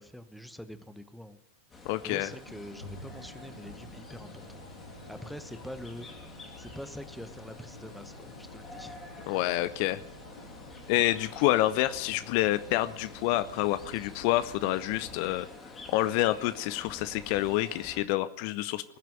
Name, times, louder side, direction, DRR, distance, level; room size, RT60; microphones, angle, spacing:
voice 1, 0.0-1.4 2.0-4.6 5.1-9.4, equal, ahead, 11 dB, 1.1 m, -45 dB
sound 1, 1.7-18.0, left 3 dB, 20° left, 3.2 m, -49 dB
voice 2, 1.9-2.3 9.3-10.0 10.9-15.5 15.9-18.8, left 16 dB, 45° left, 15 dB, 0.6 m, -28 dB
sound 2, 2.5-15.2, left 1 dB, 80° left, 2.7 m, -50 dB
Bowed string instrument, 2.8-8.4, equal, 65° left, 7.2 m, -54 dB
20.5 x 7.5 x 9.3 m, 0.76 s
figure-of-eight pair, 90°, 0 cm